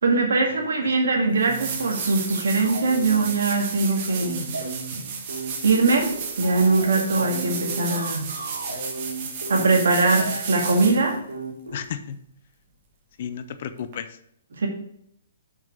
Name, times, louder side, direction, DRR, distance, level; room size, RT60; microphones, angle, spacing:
voice 1, 0.0-4.5 5.6-8.3 9.5-11.2 14.6-14.7, right 3 dB, 70° right, 2 dB, 2.0 m, -21 dB
sound 1, 0.9-1.0 1.4-11.1 13.9-14.0, right 5 dB, 40° right, 1.6 m, -33 dB
sound 2, 1.4-11.8, right 3 dB, 90° right, 2.1 m, -35 dB
voice 2, 11.7-12.2 13.2-14.1, left 8 dB, 50° left, 11 dB, 0.7 m, -32 dB
6.0 x 5.5 x 6.2 m, 0.71 s
figure-of-eight pair, 130°, 0 cm